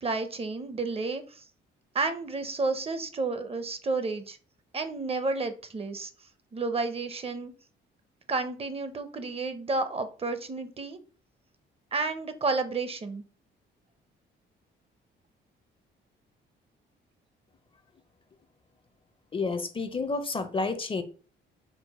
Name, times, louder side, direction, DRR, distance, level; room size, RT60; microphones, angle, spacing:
voice 1, 0.0-1.4 1.9-4.4 4.7-6.1 6.5-7.5 8.3-11.0 11.9-13.2, right 3 dB, 30° right, 0.6 m, -31 dB
voice 2, 19.3-21.0, left 3 dB, 25° left, 0.5 m, -30 dB
4.6 x 2.0 x 4.0 m
cardioid pair, 90°, 20 cm